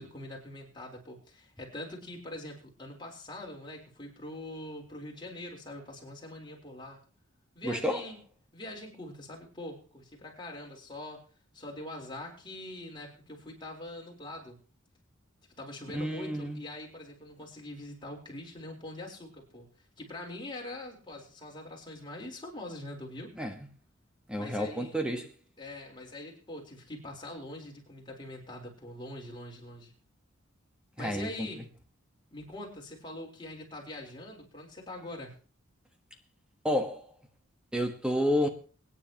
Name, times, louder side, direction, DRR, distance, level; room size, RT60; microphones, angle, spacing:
voice 1, 0.0-7.0 7.5-8.2 8.5-11.2 11.5-14.6 15.6-19.7 20.0-23.3 24.4-25.0 25.6-30.0 31.0-31.6 32.3-35.4, left 1 dB, 25° left, 4.2 m, -43 dB
voice 2, 7.6-8.0 15.9-16.6 23.4-23.5 24.3-25.3 31.0-31.5 36.6-37.0 37.7-38.5, equal, 5° right, 1.4 m, -30 dB
24.5 x 9.9 x 3.0 m
head